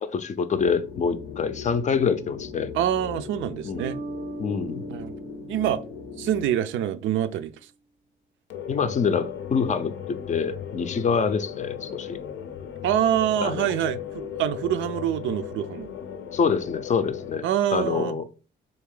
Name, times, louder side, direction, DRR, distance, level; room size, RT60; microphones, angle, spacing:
voice 1, 0.0-2.7 3.6-3.9 4.4-4.8 8.7-12.2 13.4-13.7 16.3-18.2, left 5 dB, 40° left, 0.4 m, -26 dB
sound 1, 0.5-6.5 8.5-17.4, left 8 dB, 80° left, 0.6 m, -37 dB
voice 2, 2.7-4.0 4.9-5.2 5.5-5.8 6.2-7.5 12.8-15.9 17.4-18.2, right 11 dB, 75° right, 0.4 m, -25 dB
sound 2, 3.8-7.1, right 3 dB, 25° right, 0.5 m, -39 dB
3.5 x 2.7 x 3.7 m
cardioid pair, 90°, 20 cm